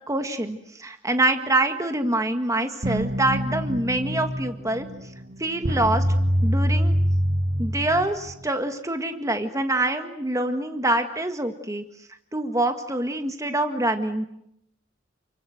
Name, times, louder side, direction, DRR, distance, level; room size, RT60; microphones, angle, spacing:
voice 1, 0.1-4.9 5.4-6.1 6.4-7.0 7.6-11.8 12.3-14.2, right 1 dB, 15° right, 6 dB, 1.8 m, -25 dB
sound 1, 2.8-8.4, equal, 50° right, 2.0 m, -25 dB
29.5 x 24.5 x 7.9 m, 0.78 s
head